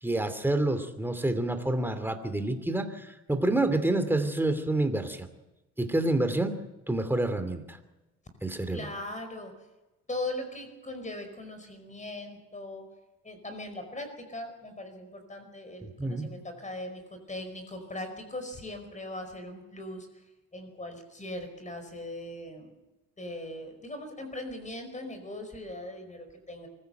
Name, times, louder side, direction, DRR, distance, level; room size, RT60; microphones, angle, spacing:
voice 1, 0.0-5.3 5.8-6.5 6.9-7.8 8.4-8.9 15.8-16.3, right 2 dB, 5° right, 9 dB, 2.7 m, -28 dB
voice 2, 8.7-9.5 10.1-12.9 13.2-20.1 20.5-22.7 23.2-26.7, left 1 dB, 25° left, 7 dB, 5.0 m, -39 dB
24.0 x 16.0 x 7.9 m, 1.0 s
cardioid pair, 90°, 30 cm